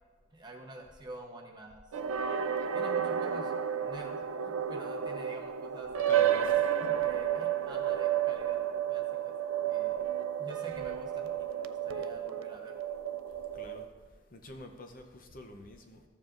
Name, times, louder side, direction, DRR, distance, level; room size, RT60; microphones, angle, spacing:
voice 1, 0.3-1.8 2.7-3.5 3.8-5.9 7.0-9.3 9.7-10.0 10.4-12.7, right 1 dB, 20° right, 0.9 m, -47 dB
sound 1, 1.9-13.9, right 9 dB, 75° right, 0.4 m, -31 dB
voice 2, 6.1-7.0 13.5-16.0, left 2 dB, 40° left, 0.7 m, -48 dB
14.0 x 7.2 x 2.5 m
head